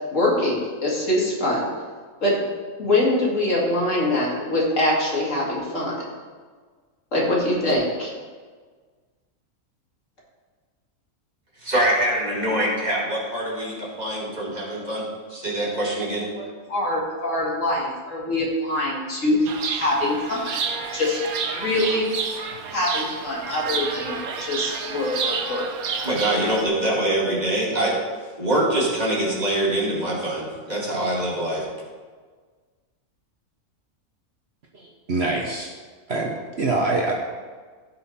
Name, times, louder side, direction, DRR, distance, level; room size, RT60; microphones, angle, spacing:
voice 1, 0.0-1.7 2.2-2.4 2.8-6.0 7.1-8.1 16.3-20.6 20.9-21.2 21.4-22.1 22.7-25.7, left 1 dB, 55° left, -4 dB, 2.6 m, -24 dB
voice 2, 11.6-16.3 26.0-28.0 28.4-31.7, right 1 dB, 30° right, -4 dB, 2.2 m, -24 dB
Chirp tweet, 19.5-26.7, right 5 dB, 75° right, 1.3 m, -30 dB
voice 3, 34.7-35.7 36.1-37.1, right 2 dB, 50° right, -1 dB, 1.2 m, -25 dB
16.0 x 5.6 x 4.2 m, 1.5 s
omnidirectional pair, 1.6 m